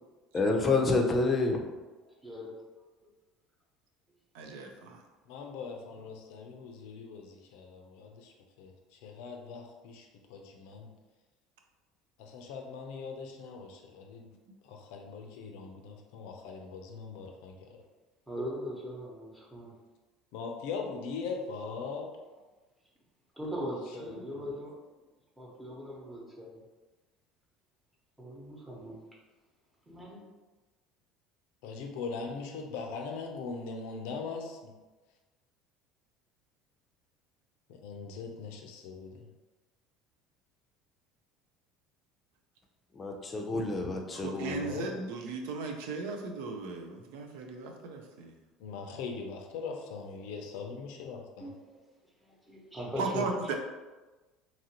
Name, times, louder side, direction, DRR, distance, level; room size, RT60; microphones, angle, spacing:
voice 1, 0.3-1.6 43.0-44.6, left 3 dB, 25° left, 2 dB, 0.5 m, -28 dB
voice 2, 2.1-2.7 18.3-19.7 23.3-24.8 25.4-26.6 28.2-29.0 29.9-30.2 51.4-51.8 52.2-53.3, equal, 10° right, -3 dB, 0.9 m, -40 dB
voice 3, 4.3-5.0 44.1-48.4 53.0-53.5, right 4 dB, 85° right, 3 dB, 0.4 m, -37 dB
voice 4, 5.3-10.9 12.2-14.3 14.6-17.7 20.3-22.1 24.0-24.4 31.6-34.7 37.7-39.3 44.4-45.0 48.6-51.5, left 5 dB, 80° left, 3 dB, 0.4 m, -41 dB
2.9 x 2.5 x 2.8 m, 1.2 s
supercardioid pair, 100°, 0 cm